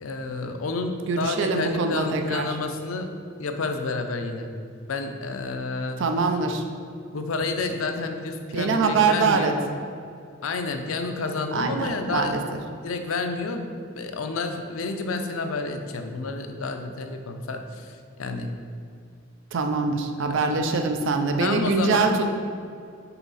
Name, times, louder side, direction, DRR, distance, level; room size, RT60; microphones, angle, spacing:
voice 1, 0.0-3.1 3.4-4.5 4.9-6.0 7.1-9.6 10.4-12.4 12.8-13.7 13.9-18.5 20.2-20.4 21.4-22.1, left 3 dB, 85° left, 6 dB, 0.5 m, -30 dB
voice 2, 1.1-2.6 6.0-6.6 8.5-9.5 11.5-12.4 19.5-22.3, right 4 dB, 65° right, 5 dB, 0.5 m, -23 dB
5.8 x 4.0 x 4.1 m, 2.3 s
head